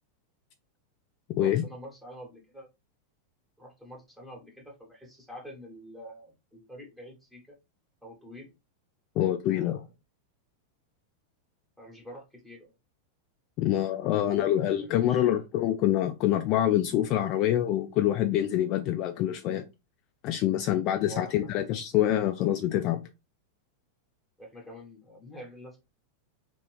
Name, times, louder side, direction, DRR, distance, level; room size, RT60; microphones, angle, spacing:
voice 1, 1.4-2.7 3.6-7.6 8.0-8.5 9.5-9.9 11.8-12.7 14.5-15.4 21.0-21.5 24.4-25.8, equal, 5° right, 1.2 m, -47 dB
voice 2, 9.2-9.8 13.6-19.6 20.2-23.0, left 12 dB, 40° left, 0.3 m, -26 dB
2.8 x 2.6 x 3.2 m
figure-of-eight pair, 90°, 0 cm